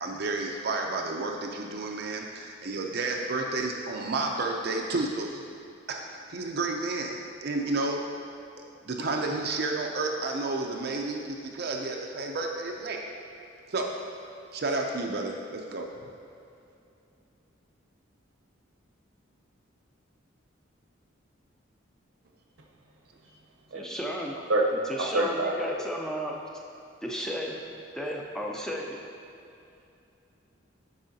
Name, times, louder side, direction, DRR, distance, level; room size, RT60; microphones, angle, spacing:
voice 1, 0.0-5.5 5.9-8.0 8.9-13.0 13.7-13.9 14.5-15.9, right 3 dB, 50° right, 1 dB, 0.5 m, -31 dB
voice 2, 23.7-24.4 24.9-26.4 27.0-27.6 27.9-29.0, equal, 5° left, -1 dB, 0.5 m, -34 dB
voice 3, 24.5-25.8, right 1 dB, 80° right, 0 dB, 0.8 m, -27 dB
8.8 x 5.4 x 2.7 m, 2.6 s
head